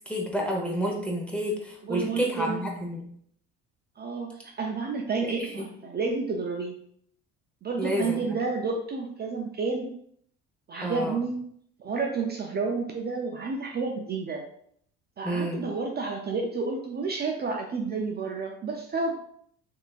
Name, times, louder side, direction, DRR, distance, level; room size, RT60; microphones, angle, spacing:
voice 1, 0.1-3.0 5.2-5.6 7.8-8.4 10.8-11.2 15.2-15.6, equal, 5° left, -1 dB, 1.0 m, -30 dB
voice 2, 1.8-2.6 4.0-6.8 7.6-9.9 10.7-11.4 11.8-14.4 15.2-19.2, right 4 dB, 30° right, 1 dB, 0.4 m, -30 dB
3.5 x 2.9 x 2.4 m, 0.66 s
supercardioid pair, 80°, 35 cm